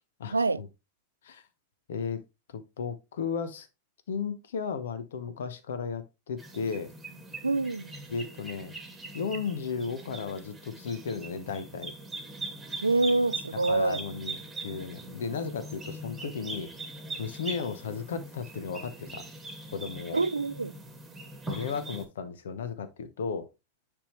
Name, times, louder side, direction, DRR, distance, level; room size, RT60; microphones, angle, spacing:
voice 1, 0.2-0.7 1.2-1.4 1.9-2.2 2.5-3.7 4.1-6.9 8.1-8.7 9.1-11.9 13.7-16.7 17.2-19.2 19.7-20.2 21.5-23.5, left 5 dB, 60° left, 0.9 m, -35 dB
sound 1, 6.4-22.1, right 2 dB, 10° right, 1.6 m, -41 dB
voice 2, 7.4-7.9 12.8-14.0 20.1-20.7, right 3 dB, 80° right, 0.3 m, -26 dB
9.9 x 3.6 x 3.2 m
figure-of-eight pair, 90°, 0 cm